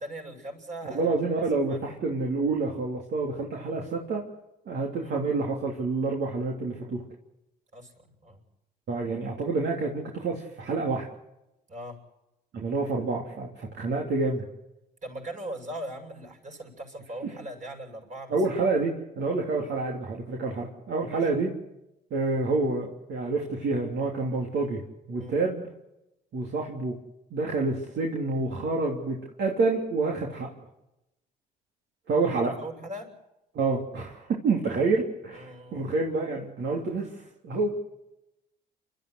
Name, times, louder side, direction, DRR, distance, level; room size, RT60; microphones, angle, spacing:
voice 1, 0.0-1.1 1.7-1.8 5.0-5.1 7.7-8.4 11.7-12.0 15.0-18.4 21.0-21.3 25.2-25.3 32.6-33.1 35.3-35.9, right 1 dB, 35° right, 2 dB, 7.8 m, -40 dB
voice 2, 0.8-4.2 4.7-7.0 8.9-11.1 12.5-14.4 17.2-17.3 18.3-21.5 22.1-24.8 25.1-25.6 26.3-26.9 27.3-30.5 32.1-32.6 33.5-37.7, right 3 dB, 55° right, -1 dB, 3.3 m, -28 dB
29.5 x 13.0 x 8.1 m, 0.89 s
hypercardioid pair, 55°, 21 cm